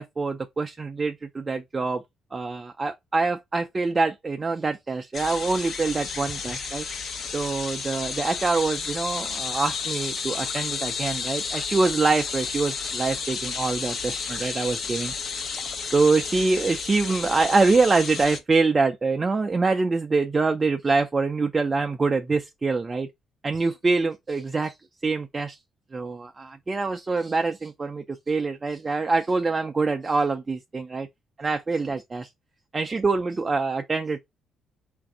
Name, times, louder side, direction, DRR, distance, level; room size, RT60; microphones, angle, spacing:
voice 1, 0.0-2.0 2.3-6.9 7.3-15.1 15.9-23.1 23.4-24.7 25.0-25.6 25.9-31.1 31.4-32.3 32.7-34.2, right 3 dB, 30° right, 0.4 m, -25 dB
sound 1, 5.1-18.4, left 5 dB, 60° left, 0.9 m, -32 dB
3.9 x 2.6 x 3.5 m
cardioid pair, 90°, 0 cm